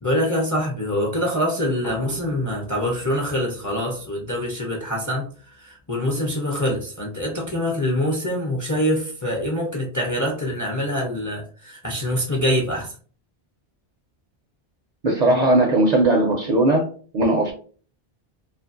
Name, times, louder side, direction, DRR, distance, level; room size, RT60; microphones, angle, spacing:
voice 1, 0.0-5.3 5.6-12.9, equal, 25° left, 0.4 m, -25 dB
sound 1, 1.8-5.3, right 1 dB, 85° left, 0.9 m, -43 dB
voice 2, 15.0-16.9 17.1-17.5, right 2 dB, 55° right, 0.5 m, -18 dB
2.6 x 2.5 x 2.5 m
omnidirectional pair, 1.0 m